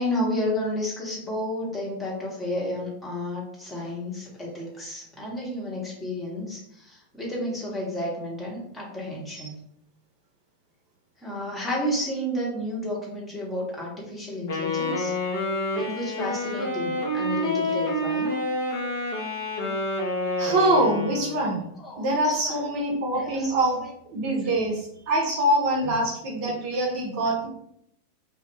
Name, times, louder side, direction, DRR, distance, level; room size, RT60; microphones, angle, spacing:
voice 1, 0.0-9.6 11.2-15.2 15.7-18.4 21.8-22.6 23.1-23.5 24.4-24.5 25.8-26.0, left 1 dB, 10° left, -4 dB, 0.8 m, -31 dB
Wind instrument woodwind instrument, 14.5-21.4, left 1 dB, 50° left, 0.7 m, -28 dB
voice 2, 20.4-21.6 22.0-23.8 24.1-27.5, right 1 dB, 45° right, -1 dB, 0.6 m, -24 dB
2.2 x 2.0 x 3.1 m, 0.72 s
figure-of-eight pair, 90°, 0 cm